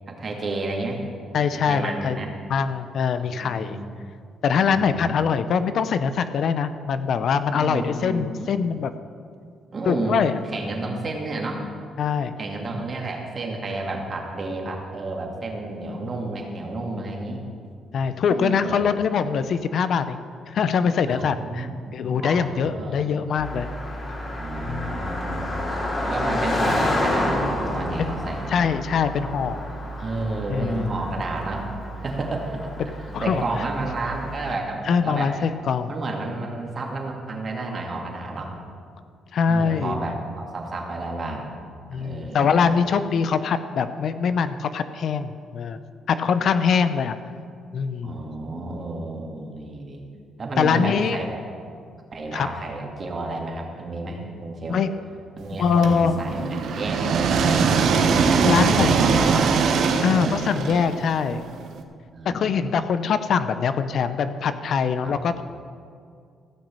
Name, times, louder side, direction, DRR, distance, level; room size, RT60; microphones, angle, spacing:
voice 1, 0.1-1.0 1.5-2.3 3.2-4.0 4.6-5.1 7.6-8.5 9.7-10.2 10.5-11.6 12.4-17.4 18.3-18.9 21.1-23.1 24.3-25.5 26.0-28.5 30.0-31.7 32.0-35.3 35.9-38.5 39.5-41.5 41.9-42.6 48.0-50.0 50.4-51.4 52.1-54.8 55.4-57.4 58.4-59.5 60.1-60.2 62.1-62.5 65.0-65.1, right 2 dB, 40° right, 1 dB, 2.3 m, -31 dB
voice 2, 1.3-2.2 2.5-3.8 4.4-8.9 9.8-10.4 12.0-12.3 17.9-20.2 20.5-23.7 24.7-25.2 28.0-28.1 28.5-29.7 30.5-30.9 32.8-33.4 34.9-35.9 39.3-40.0 41.9-45.8 46.1-47.2 47.7-48.1 50.6-51.2 52.3-52.5 54.7-54.9 55.6-56.2 58.4-59.0 60.0-61.4 62.2-65.4, left 6 dB, 65° left, 11 dB, 0.6 m, -23 dB
Car passing by, 23.4-34.5, left 1 dB, 35° left, 2.8 m, -29 dB
sound 1, 55.8-61.7, right 5 dB, 70° right, 1.0 m, -21 dB
15.5 x 6.3 x 7.5 m, 2.3 s
cardioid pair, 90°, 0 cm